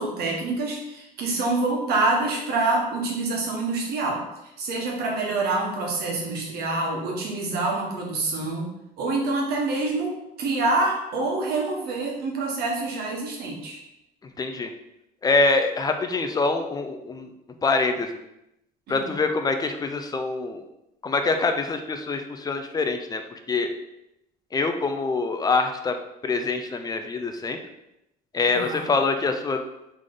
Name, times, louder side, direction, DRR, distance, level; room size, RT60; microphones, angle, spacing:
voice 1, 0.0-4.2 4.6-13.8 18.9-19.1 28.5-28.8, right 2 dB, 70° right, -1 dB, 1.3 m, -26 dB
voice 2, 14.4-14.7 15.2-17.3 17.6-18.2 18.9-20.6 21.0-23.2 23.5-23.7 24.5-26.0 26.2-27.6 28.3-29.6, left 3 dB, 20° left, 6 dB, 0.5 m, -25 dB
3.7 x 3.2 x 3.8 m, 0.87 s
cardioid pair, 110°, 17 cm